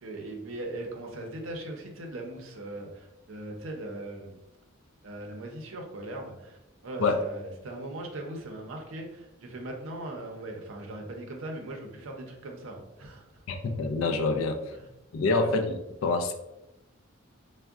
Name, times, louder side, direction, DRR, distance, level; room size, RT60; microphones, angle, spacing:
voice 1, 0.0-4.4 5.0-13.4 14.8-14.9 15.3-15.5, right 1 dB, 75° right, 2 dB, 0.5 m, -39 dB
voice 2, 13.5-14.6 15.1-16.3, left 3 dB, 75° left, 8 dB, 0.4 m, -26 dB
3.5 x 2.1 x 2.3 m, 0.91 s
head